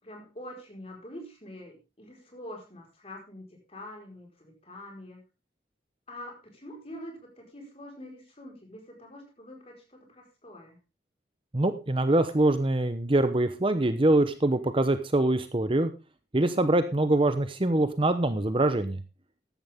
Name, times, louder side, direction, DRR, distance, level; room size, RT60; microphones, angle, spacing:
voice 1, 0.0-5.2 6.1-10.8, left 1 dB, 30° left, 1 dB, 4.7 m, -45 dB
voice 2, 11.5-15.9 16.3-19.0, right 2 dB, 30° right, 10 dB, 0.8 m, -24 dB
14.5 x 11.0 x 3.6 m, 0.29 s
head